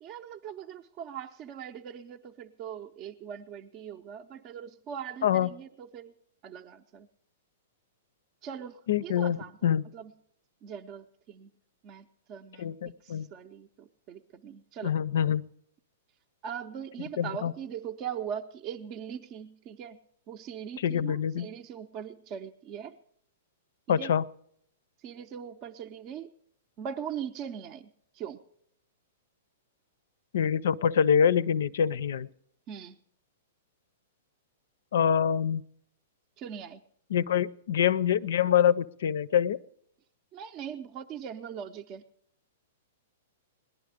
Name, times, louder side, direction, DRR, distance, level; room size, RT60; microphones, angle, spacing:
voice 1, 0.0-6.1 6.4-7.1 8.4-10.1 10.6-11.5 11.8-12.7 13.0-14.9 16.4-20.0 20.3-22.9 23.9-24.1 25.0-26.3 26.8-27.9 28.1-28.4 32.7-33.0 36.4-36.8 40.3-42.0, right 8 dB, 35° right, 6 dB, 0.5 m, -40 dB
voice 2, 8.9-9.4 9.6-9.8 12.6-13.3 14.8-15.4 17.2-17.5 20.8-21.5 23.9-24.2 30.3-32.3 34.9-35.6 37.1-39.6, left 8 dB, 75° left, 18 dB, 0.5 m, -25 dB
18.5 x 10.5 x 5.0 m, 0.68 s
hypercardioid pair, 140°, 0 cm